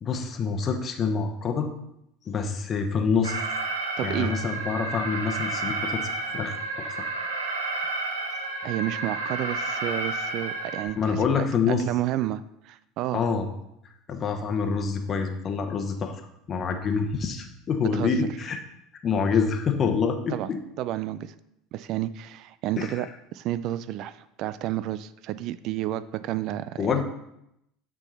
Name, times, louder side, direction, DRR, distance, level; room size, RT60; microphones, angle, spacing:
voice 1, 0.0-1.7 2.3-3.4 4.0-7.0 11.0-11.8 13.1-13.5 14.1-16.2 16.5-18.6 19.0-20.6 22.8-22.9 26.8-27.0, left 5 dB, 40° left, 5 dB, 0.9 m, -26 dB
Alarm, 3.2-10.8, right 3 dB, 85° right, 0.9 m, -31 dB
voice 2, 4.0-4.3 8.6-13.3 17.9-18.1 20.3-20.5 20.8-21.3 21.7-27.0, right 13 dB, 60° right, 16 dB, 0.3 m, -31 dB
8.9 x 3.8 x 4.1 m, 0.81 s
hypercardioid pair, 80°, 0 cm